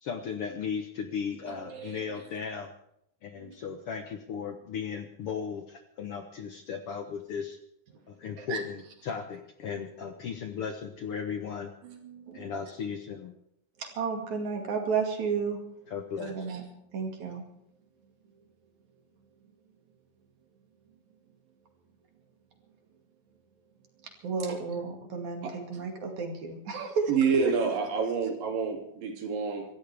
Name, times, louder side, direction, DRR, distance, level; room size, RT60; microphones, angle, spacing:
voice 1, 0.0-2.7 3.2-7.6 8.1-11.7 12.3-13.3 15.9-16.5, left 6 dB, 70° left, 6 dB, 1.4 m, -36 dB
voice 2, 1.7-2.0 3.4-3.5 8.4-8.6 11.8-12.5 13.8-15.6 16.2-16.6 16.9-17.4 24.2-27.5, right 5 dB, 60° right, 3 dB, 3.5 m, -32 dB
voice 3, 27.1-29.7, right 6 dB, 85° right, 2 dB, 4.3 m, -28 dB
26.0 x 14.0 x 3.5 m, 0.74 s
omnidirectional pair, 3.9 m